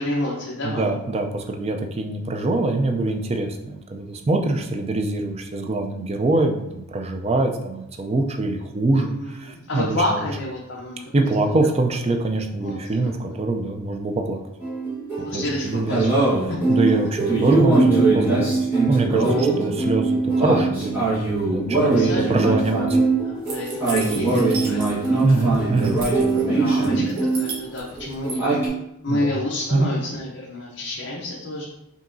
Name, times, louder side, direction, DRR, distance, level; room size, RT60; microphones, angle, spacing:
voice 1, 0.0-0.9 9.0-11.1 11.9-12.0 12.6-12.8 13.0-13.4 15.2-16.6 19.2-19.4 21.8-22.7 23.2-25.4 26.3-28.5 29.0-31.6, left 1 dB, 55° left, -4 dB, 0.6 m, -29 dB
voice 2, 0.6-10.3 11.1-14.4 15.2-16.0 16.7-18.5 18.9-21.1 21.3-23.0 25.2-26.0 29.1-29.3 29.7-29.9, right 2 dB, 30° right, 4 dB, 0.4 m, -24 dB
sound 1, 14.6-27.7 28.0-28.7, right 3 dB, 10° right, 1.2 m, -21 dB
sound 2, 23.5-25.2 25.5-26.4 26.8-28.4, right 3 dB, 80° right, 1.1 m, -35 dB
5.3 x 2.8 x 2.6 m, 0.86 s
head